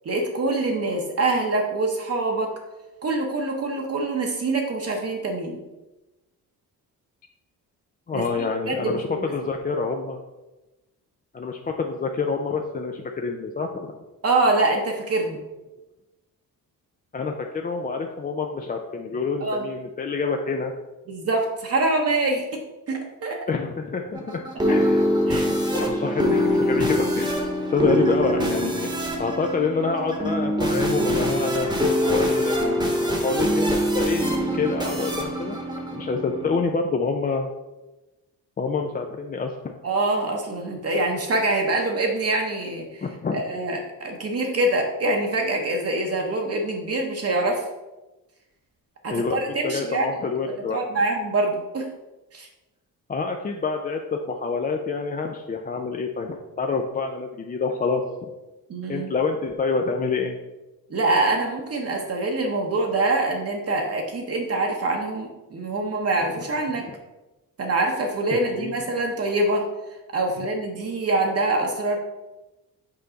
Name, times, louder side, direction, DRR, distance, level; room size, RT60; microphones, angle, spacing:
voice 1, 0.0-2.5 3.0-5.6 8.1-8.2 8.7-9.3 14.2-15.4 19.4-19.7 21.1-22.6 22.9-23.4 25.3-25.6 39.8-43.0 43.3-47.6 49.0-50.1 50.7-51.9 52.3-52.5 58.7-59.1 60.9-66.9 67.6-69.7 70.1-72.0, right 2 dB, 40° right, 1 dB, 0.8 m, -25 dB
voice 2, 8.1-10.2 11.3-14.0 17.1-20.7 23.5-25.1 25.7-27.4 27.7-28.9 29.2-32.6 33.1-35.6 35.9-37.5 38.6-39.6 43.0-43.4 49.1-50.8 53.1-58.0 58.9-60.4 68.3-68.7, left 4 dB, 25° left, 3 dB, 0.4 m, -27 dB
sound 1, 24.1-36.6, equal, 10° right, 1.0 m, -24 dB
5.6 x 4.6 x 3.9 m, 1.0 s
cardioid pair, 125°, 36 cm